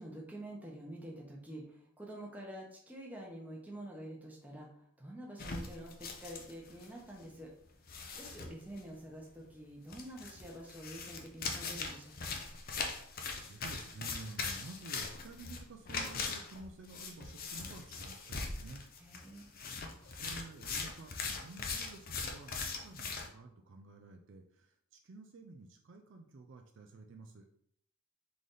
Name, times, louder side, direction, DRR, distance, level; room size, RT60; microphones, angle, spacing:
voice 1, 0.0-4.7 5.0-7.5 8.2-12.3 19.0-19.5, right 1 dB, 5° right, -2 dB, 0.9 m, -47 dB
sound 1, 5.4-7.0 7.2-7.3 7.9-8.8 9.9-23.3, left 4 dB, 40° left, 0.6 m, -41 dB
voice 2, 13.3-18.8 20.0-21.1 21.4-27.5, right 3 dB, 55° right, 4 dB, 0.4 m, -51 dB
3.9 x 3.3 x 3.8 m, 0.67 s
head